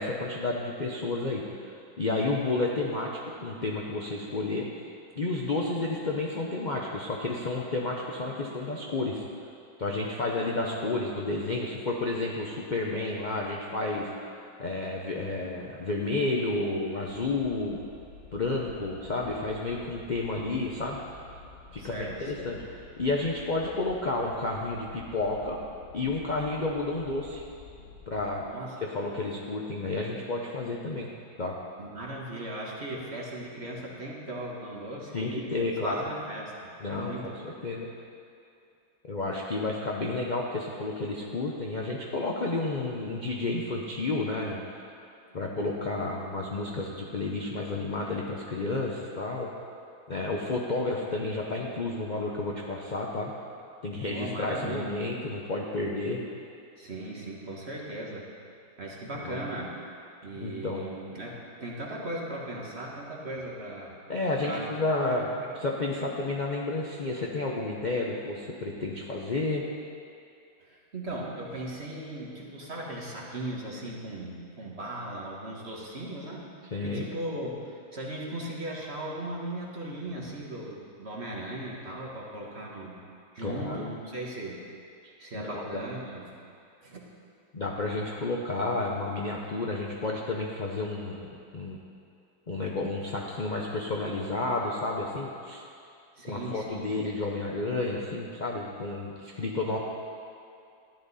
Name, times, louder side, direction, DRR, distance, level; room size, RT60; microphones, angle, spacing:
voice 1, 0.0-4.7 5.2-9.2 9.8-14.1 14.6-17.8 18.3-21.0 21.7-22.6 23.0-25.6 25.9-27.4 28.1-28.4 28.8-31.1 31.4-31.5 35.1-36.0 36.8-37.9 39.0-44.6 45.3-49.5 50.1-53.3 53.8-56.2 59.2-59.4 60.4-60.8 64.1-65.3 65.6-69.6 76.7-77.1 83.4-83.9 85.3-85.8 87.5-91.8 92.5-95.6 96.2-99.8, left 2 dB, 60° left, -2 dB, 0.4 m, -31 dB
sound 1, 17.1-28.4, left 3 dB, 35° left, 1.3 m, -50 dB
voice 2, 21.8-22.5 28.4-28.8 31.8-36.5 36.8-37.5 54.0-54.9 56.8-58.3 58.8-59.7 60.2-64.0 64.4-65.3 70.6-76.5 76.8-83.0 83.3-84.6 85.2-86.3 86.8-87.0 96.2-96.9, right 1 dB, 35° right, -3 dB, 1.6 m, -38 dB
14.0 x 10.5 x 4.1 m, 2.5 s
omnidirectional pair, 2.1 m